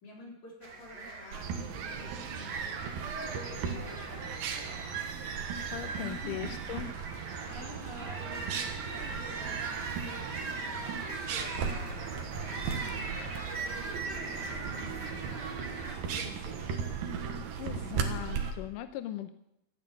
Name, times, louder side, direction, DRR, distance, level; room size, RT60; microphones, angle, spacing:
voice 1, 0.0-2.8 3.1-5.3 6.0-6.6 7.4-15.4 16.2-17.3, left 1 dB, 50° left, -2 dB, 5.5 m, -49 dB
sound 1, 0.6-15.9, right 3 dB, 30° right, 2.4 m, -42 dB
sound 2, 1.3-18.5, right 6 dB, 70° right, 3.0 m, -37 dB
voice 2, 5.6-6.9 17.6-19.3, left 13 dB, 80° left, 10 dB, 2.0 m, -39 dB
14.5 x 9.7 x 9.0 m, 0.82 s
omnidirectional pair, 4.5 m